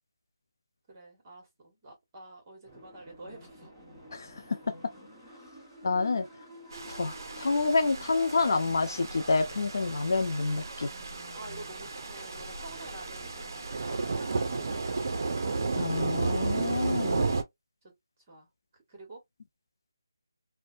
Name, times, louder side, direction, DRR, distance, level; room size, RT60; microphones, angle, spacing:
voice 1, 0.9-3.7 11.3-15.0 18.3-18.5 18.9-19.2, right 2 dB, 25° right, 1.3 m, -48 dB
sound 1, 2.6-17.4, equal, ahead, 1.2 m, -51 dB
voice 2, 4.1-4.6 5.8-6.3 6.8-10.9 15.8-17.3, left 3 dB, 55° left, 0.4 m, -28 dB
sound 2, 6.7-17.4, right 3 dB, 50° right, 0.5 m, -33 dB
2.6 x 2.1 x 2.4 m
figure-of-eight pair, 160°, 2 cm